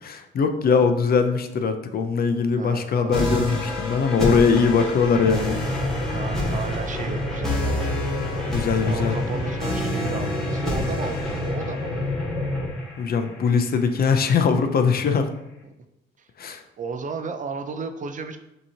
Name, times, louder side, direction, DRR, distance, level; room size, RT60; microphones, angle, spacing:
voice 1, 0.0-5.6 8.5-9.2 13.0-15.3 16.4-16.6, left 5 dB, 50° left, 7 dB, 0.5 m, -21 dB
voice 2, 2.6-3.3 6.1-7.9 8.8-12.0 15.6-15.7 16.2-16.3 16.8-18.4, right 4 dB, 40° right, 7 dB, 0.5 m, -34 dB
sound 1, 3.1-14.1, left 1 dB, ahead, 1.4 m, -30 dB
sound 2, 5.1-12.7, left 1 dB, 70° left, 1.3 m, -29 dB
6.1 x 2.9 x 2.7 m, 0.92 s
cardioid pair, 90°, 20 cm